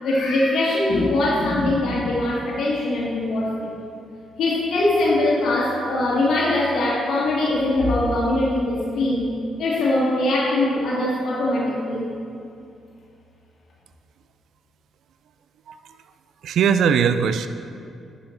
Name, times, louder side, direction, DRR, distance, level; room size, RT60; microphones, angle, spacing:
voice 1, 0.0-3.7 4.4-9.3 9.6-12.1, left 2 dB, 65° left, -5 dB, 1.6 m, -22 dB
voice 2, 16.4-17.5, right 7 dB, 70° right, 10 dB, 0.4 m, -19 dB
11.5 x 5.5 x 4.4 m, 2.5 s
hypercardioid pair, 45°, 0 cm